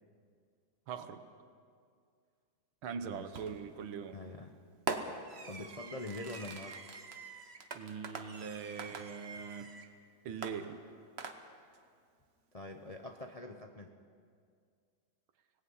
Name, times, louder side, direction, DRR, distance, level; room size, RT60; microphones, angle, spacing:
voice 1, 0.9-1.2 2.8-4.2 7.7-9.7 10.2-10.8, right 6 dB, 80° right, 9 dB, 1.9 m, -42 dB
voice 2, 3.0-3.3 4.1-4.6 5.5-6.8 12.5-13.9, left 2 dB, 65° left, 3 dB, 0.3 m, -44 dB
Fireworks, 3.3-3.8 4.9-9.9 10.4-11.8, right 4 dB, 40° right, 1.0 m, -43 dB
25.5 x 18.5 x 5.6 m, 2.2 s
omnidirectional pair, 2.3 m